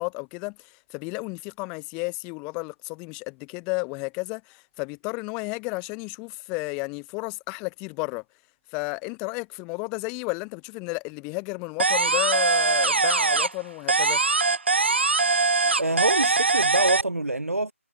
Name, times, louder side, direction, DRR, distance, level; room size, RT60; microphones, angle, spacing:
voice 1, 0.0-8.2 8.7-14.2, left 31 dB, 10° left, 1.1 m, -32 dB
sound 1, 11.8-13.6 13.9-17.0, right 3 dB, 50° right, 1.7 m, -22 dB
voice 2, 15.8-17.7, right 2 dB, 75° right, 4.7 m, -25 dB
figure-of-eight pair, 165°, 8 cm